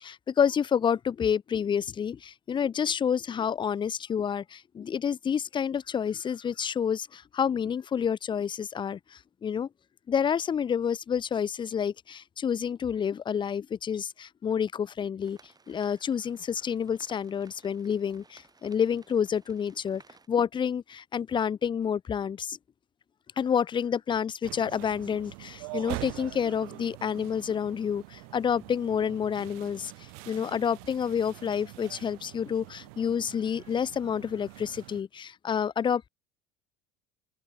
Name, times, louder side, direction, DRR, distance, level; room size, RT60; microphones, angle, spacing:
voice 1, 0.0-9.7 10.1-15.4 15.7-20.0 20.3-22.6 23.4-29.9 30.3-36.1, left 7 dB, 25° left, 0.5 m, -29 dB
sound 1, 15.2-20.3, right 4 dB, 20° right, 7.1 m, -58 dB
sound 2, 24.4-35.0, right 38 dB, 65° right, 1.7 m, -44 dB
open air
hypercardioid pair, 70°, 19 cm